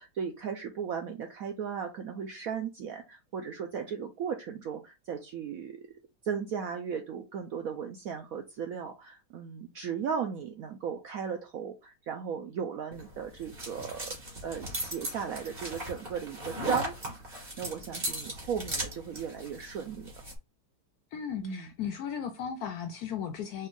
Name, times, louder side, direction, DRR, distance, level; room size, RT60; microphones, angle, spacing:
voice 1, 0.0-5.9 6.2-14.2 14.4-20.1 21.4-21.7, right 7 dB, 75° right, 0.8 m, -36 dB
sound 1, 12.9-20.4, right 1 dB, 25° right, 1.5 m, -38 dB
voice 2, 21.1-23.7, left 8 dB, 75° left, 0.9 m, -36 dB
4.3 x 2.4 x 3.7 m
omnidirectional pair, 2.0 m